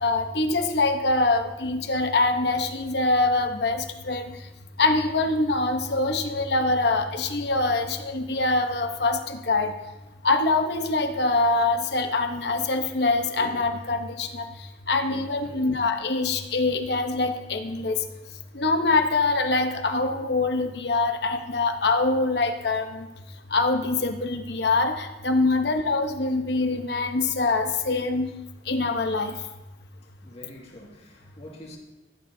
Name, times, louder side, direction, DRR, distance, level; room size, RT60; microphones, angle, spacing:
voice 1, 0.0-4.2 4.8-9.7 10.2-14.5 14.9-18.0 18.5-23.0 23.5-28.3 28.7-29.3, left 3 dB, 65° left, 6 dB, 1.0 m, -24 dB
voice 2, 15.4-15.9 25.6-25.7 30.2-31.8, left 1 dB, 35° left, -2 dB, 2.1 m, -46 dB
15.0 x 11.5 x 2.8 m, 1.0 s
head